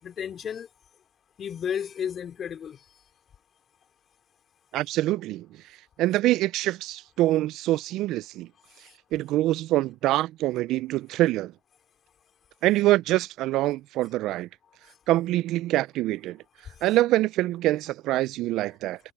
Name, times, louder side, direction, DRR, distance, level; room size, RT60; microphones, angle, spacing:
voice 1, 0.0-0.7 1.4-3.1 8.7-9.0 14.8-15.0 16.6-16.9, left 8 dB, 25° left, 4.9 m, -34 dB
voice 2, 4.7-5.5 6.0-8.5 9.1-11.5 12.6-14.5 15.1-16.4 16.8-19.0, right 16 dB, 40° right, 0.4 m, -25 dB
hypercardioid pair, 120°, 0 cm